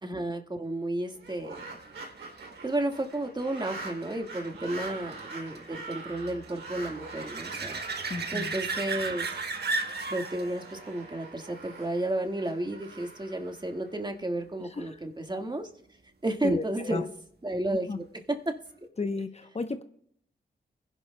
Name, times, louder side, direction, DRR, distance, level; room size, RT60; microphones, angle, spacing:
voice 1, 0.0-1.6 2.6-7.8 8.3-9.3 10.1-15.7 16.2-17.1 17.4-18.5, right 1 dB, 25° right, 4 dB, 1.7 m, -32 dB
sound 1, 1.1-14.3, right 3 dB, 80° right, 3.0 m, -44 dB
sound 2, 1.5-12.8 18.5-18.6, right 3 dB, 60° right, 1.3 m, -37 dB
voice 2, 8.1-8.5 14.6-15.0 16.4-17.0 17.9-18.0 19.0-19.8, left 3 dB, 35° left, 8 dB, 0.8 m, -33 dB
22.0 x 11.0 x 2.2 m, 0.66 s
supercardioid pair, 45°, 19 cm